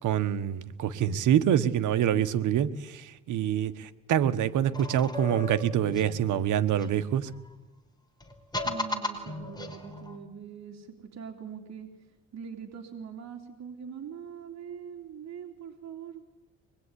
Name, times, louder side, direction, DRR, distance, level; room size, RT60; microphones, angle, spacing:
voice 1, 0.0-7.3, right 10 dB, 80° right, 11 dB, 1.4 m, -26 dB
sound 1, 4.7-7.5 8.2-10.2, left 2 dB, 15° left, 4.6 m, -37 dB
voice 2, 8.6-11.9 12.3-16.2, right 7 dB, 60° right, 3 dB, 3.4 m, -42 dB
25.0 x 21.0 x 9.9 m, 1.0 s
cardioid pair, 90°, 30 cm